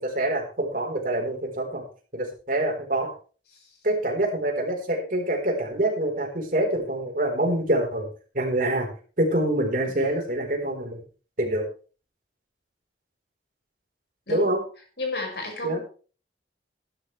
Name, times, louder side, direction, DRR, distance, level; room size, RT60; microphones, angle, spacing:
voice 1, 0.0-1.8 2.1-3.1 3.8-8.1 8.3-8.9 9.2-11.0 11.4-11.7 14.3-14.6 15.6-15.8, right 1 dB, 50° right, 1 dB, 4.2 m, -25 dB
voice 2, 15.0-15.8, left 2 dB, 70° left, 1 dB, 5.6 m, -32 dB
15.0 x 11.5 x 3.3 m, 0.37 s
head